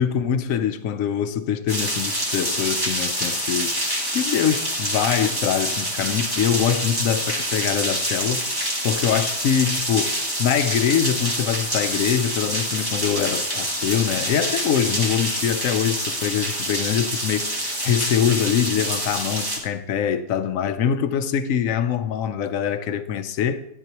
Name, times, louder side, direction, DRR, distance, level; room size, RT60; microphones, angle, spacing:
voice 1, 0.0-8.6 8.8-10.1 10.4-23.6, left 8 dB, 65° left, 1.0 m, -24 dB
sound 1, 1.7-19.6, right 1 dB, 15° right, 1.6 m, -26 dB
11.5 x 10.0 x 3.0 m
omnidirectional pair, 1.6 m